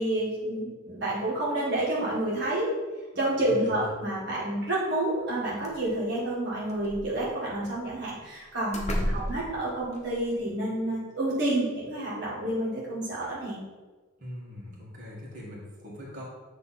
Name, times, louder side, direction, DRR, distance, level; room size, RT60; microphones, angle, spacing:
voice 1, 0.0-2.7 3.1-13.6, right 1 dB, 55° right, -7 dB, 1.6 m, -29 dB
voice 2, 3.5-3.9 9.0-9.3 14.2-16.2, left 1 dB, 40° right, -6 dB, 1.7 m, -42 dB
sound 1, 5.3-5.4 5.6-6.1 6.6-7.5 8.2-8.3 8.7-10.3, equal, 35° left, 0.9 m, -33 dB
8.1 x 3.2 x 4.2 m, 1.3 s
head